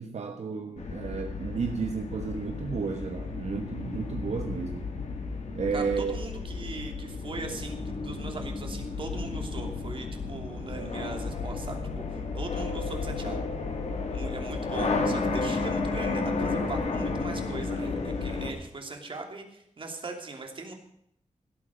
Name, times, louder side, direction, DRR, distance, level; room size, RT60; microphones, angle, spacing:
voice 1, 0.0-4.9 5.5-6.2, right 5 dB, 65° right, 5 dB, 1.3 m, -32 dB
sound 1, 0.8-18.5, left 3 dB, 65° left, 2.8 m, -32 dB
voice 2, 5.7-13.4 14.1-20.7, right 3 dB, 45° right, 3 dB, 3.0 m, -40 dB
17.0 x 8.5 x 6.4 m, 0.74 s
wide cardioid pair, 140°, 12 cm